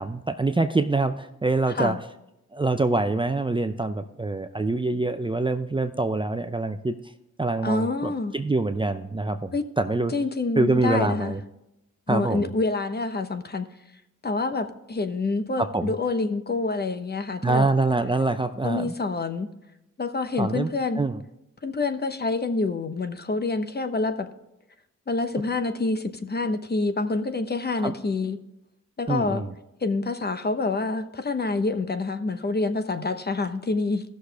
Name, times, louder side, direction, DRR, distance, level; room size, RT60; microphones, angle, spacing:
voice 1, 0.0-2.0 2.5-7.0 7.4-10.1 10.6-11.4 12.1-12.5 15.6-15.9 17.4-18.9 20.4-20.7 21.0-21.2 27.8-27.9 29.1-29.5, right 2 dB, 15° right, 8 dB, 0.6 m, -25 dB
voice 2, 7.6-8.3 9.5-9.6 10.1-11.4 12.1-13.7 14.2-17.7 18.6-19.5 20.0-21.0 21.6-24.3 25.1-28.4 29.0-29.4 29.8-34.0, left 3 dB, 30° left, 9 dB, 1.0 m, -27 dB
15.5 x 6.5 x 3.4 m, 0.89 s
cardioid pair, 65°, 31 cm